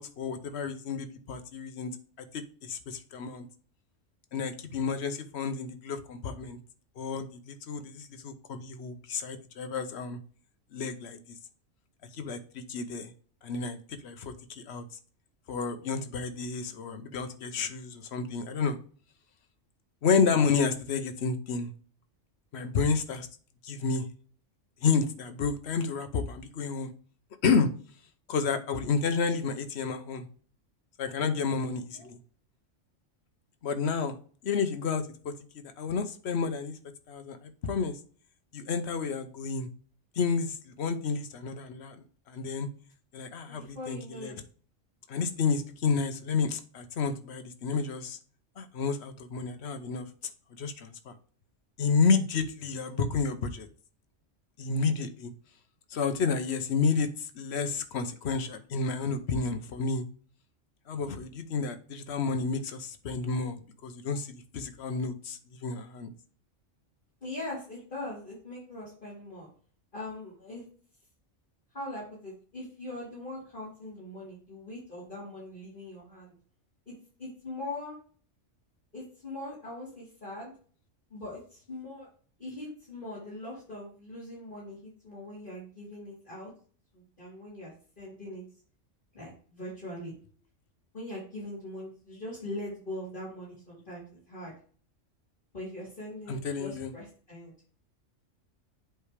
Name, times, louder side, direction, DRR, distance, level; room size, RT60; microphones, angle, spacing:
voice 1, 0.0-1.9 2.2-3.5 4.3-6.6 7.0-10.2 10.7-11.4 12.1-13.1 13.4-14.8 15.5-18.8 20.0-21.7 22.5-23.3 23.6-24.1 24.8-26.9 27.4-27.7 28.3-30.3 31.0-32.2 33.6-34.2 34.4-36.8 37.1-38.0 38.5-39.7 40.1-42.7 43.1-44.3 45.1-48.2 48.6-50.1 50.6-51.1 51.8-53.7 54.6-55.3 55.9-60.0 60.9-66.1 96.3-96.9, left 5 dB, 60° left, 9 dB, 1.0 m, -30 dB
voice 2, 31.6-32.1 43.5-44.3 67.2-69.5 69.9-70.6 71.7-76.3 76.9-77.0 77.2-78.0 78.9-80.5 81.1-82.1 82.4-86.5 86.9-88.4 89.1-90.1 90.9-94.5 95.5-97.5, left 1 dB, 40° left, -9 dB, 3.1 m, -41 dB
7.9 x 3.3 x 5.0 m, 0.43 s
omnidirectional pair, 1.3 m